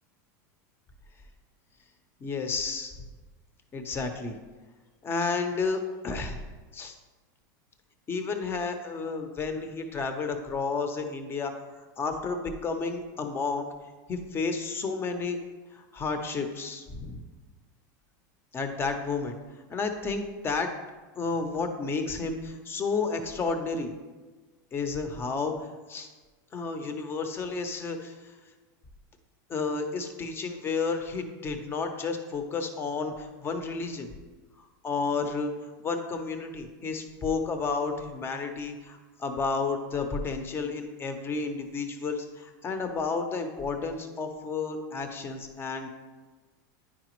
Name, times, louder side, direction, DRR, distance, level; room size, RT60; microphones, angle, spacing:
voice 1, 2.2-2.9 3.7-4.4 5.0-6.4 6.7-7.0 8.1-13.7 14.1-15.4 15.7-17.2 18.5-19.3 19.7-20.7 21.2-24.0 24.7-26.1 26.5-28.2 29.5-34.1 34.6-35.5 35.8-45.9, left 4 dB, 20° left, 6 dB, 0.8 m, -31 dB
9.8 x 5.0 x 3.1 m, 1.3 s
supercardioid pair, 135°, 10 cm